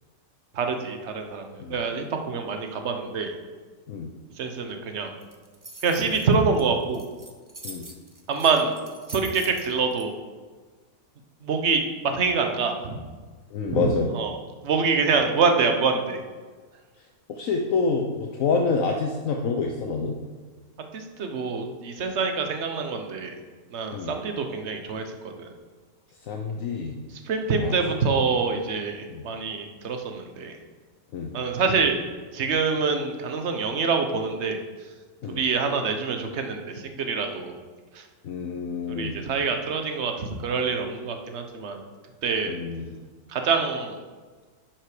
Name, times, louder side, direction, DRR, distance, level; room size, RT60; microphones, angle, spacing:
voice 1, 0.5-3.3 4.4-5.1 5.8-7.0 8.3-8.7 9.1-10.1 11.4-13.0 13.7-14.4 14.6-16.2 20.9-23.3 23.7-25.5 27.3-30.5 31.3-32.0 32.3-34.6 35.3-37.5 37.9-38.0 38.9-41.8 42.2-42.5 43.3-44.0, right 5 dB, 50° right, 5 dB, 1.2 m, -26 dB
sound 1, 5.2-10.0, right 2 dB, 20° right, 0.7 m, -43 dB
voice 2, 13.5-14.1 17.3-20.2 23.9-24.1 26.2-27.0 27.6-27.8 29.1-29.2 31.1-31.4 35.2-35.4 38.2-39.1 42.5-43.0, left 4 dB, 65° left, 1 dB, 1.1 m, -27 dB
11.0 x 6.1 x 4.9 m, 1.4 s
omnidirectional pair, 1.6 m